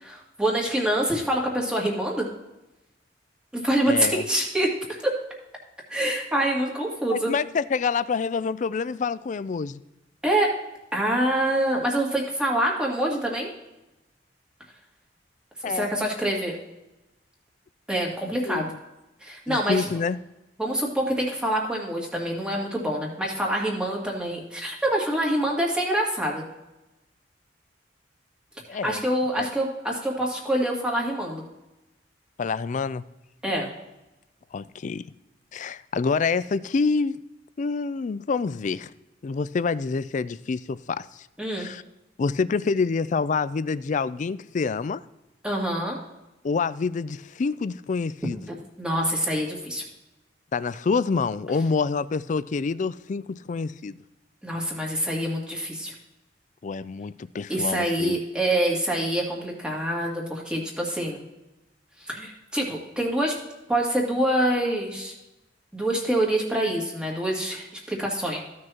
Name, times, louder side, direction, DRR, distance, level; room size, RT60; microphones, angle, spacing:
voice 1, 0.0-2.3 3.5-4.7 5.0-5.2 5.9-7.3 10.2-10.6 10.9-13.5 15.6-16.6 17.9-18.7 19.2-19.9 20.6-26.4 28.8-31.4 33.4-33.7 41.4-41.7 45.4-46.0 48.8-49.8 54.4-55.9 57.5-61.2 62.1-63.4 63.7-65.1 65.7-68.4, right 1 dB, 5° right, 2.1 m, -26 dB
voice 2, 3.9-4.2 7.1-9.8 15.6-16.1 18.2-18.8 19.5-20.2 28.7-29.0 29.4-29.5 32.4-33.0 34.5-35.1 35.5-37.2 37.6-38.9 39.2-41.3 41.5-41.8 42.2-45.0 46.4-48.5 50.5-54.0 56.6-58.2, left 4 dB, 40° left, 0.4 m, -27 dB
15.0 x 6.3 x 2.9 m
head